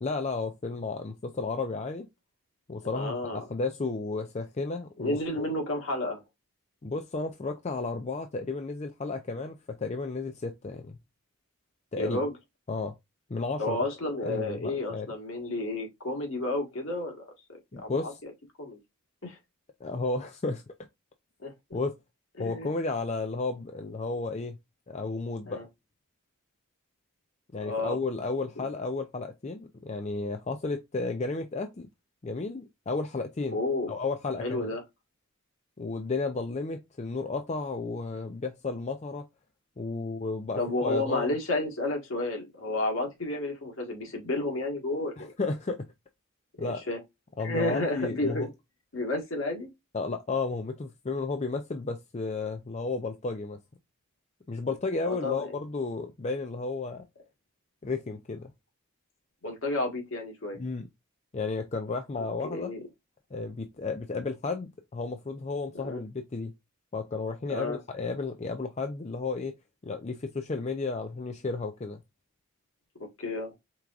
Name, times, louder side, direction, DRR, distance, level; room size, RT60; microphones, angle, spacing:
voice 1, 0.0-2.1 2.7-5.2 6.8-11.0 11.9-12.2 12.7-12.9 13.3-13.8 14.2-15.1 17.7-18.2 19.8-20.7 21.7-22.0 22.4-24.6 24.9-25.7 27.5-31.9 32.2-33.6 33.9-34.7 35.8-39.3 39.8-41.3 45.2-45.9 46.6-46.8 47.4-48.5 49.9-53.6 54.5-57.0 57.8-58.5 60.5-60.9 61.3-62.7 63.3-66.5 66.9-69.5 69.8-72.0, left 3 dB, 30° left, 0.4 m, -33 dB
voice 2, 2.9-3.4 5.0-6.2 12.0-12.3 13.6-18.3 18.6-18.8 19.2-19.4 21.4-21.5 22.4-22.7 25.5-25.6 27.6-28.0 28.6-28.7 33.5-33.9 34.4-34.8 40.6-45.3 46.6-47.0 47.4-48.5 48.9-49.7 55.1-55.4 59.4-60.6 62.4-62.8 65.7-66.0 67.5-67.8 73.2-73.5, left 2 dB, 65° left, 1.6 m, -31 dB
4.7 x 3.6 x 2.4 m
head